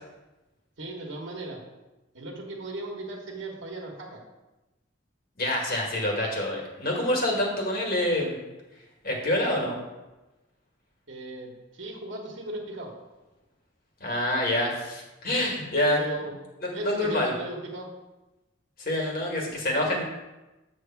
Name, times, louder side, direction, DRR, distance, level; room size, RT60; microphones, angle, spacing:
voice 1, 0.8-1.6 2.1-4.2 11.1-12.9 16.0-16.4 16.7-17.9, right 1 dB, 65° right, 1 dB, 1.3 m, -37 dB
voice 2, 5.4-8.4 9.0-9.8 14.0-16.1 16.6-17.3 18.8-20.0, left 1 dB, 45° left, -1 dB, 1.7 m, -26 dB
8.4 x 3.2 x 5.8 m, 1.1 s
head